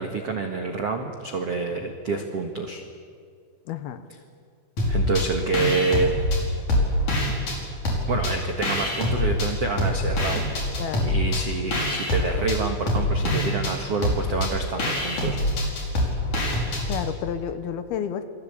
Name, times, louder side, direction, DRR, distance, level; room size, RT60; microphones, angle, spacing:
voice 1, 0.0-2.8 4.9-6.1 7.2-7.3 8.1-15.4, right 4 dB, 85° right, 4 dB, 1.3 m, -28 dB
voice 2, 3.7-4.0 10.8-11.2 16.9-18.3, left 9 dB, 70° left, 10 dB, 2.5 m, -31 dB
sound 1, 4.8-5.3 5.5-7.6 7.9-9.5 9.8-17.0, left 1 dB, 40° left, 6.3 m, -25 dB
29.0 x 21.5 x 8.8 m, 2.2 s
omnidirectional pair, 5.7 m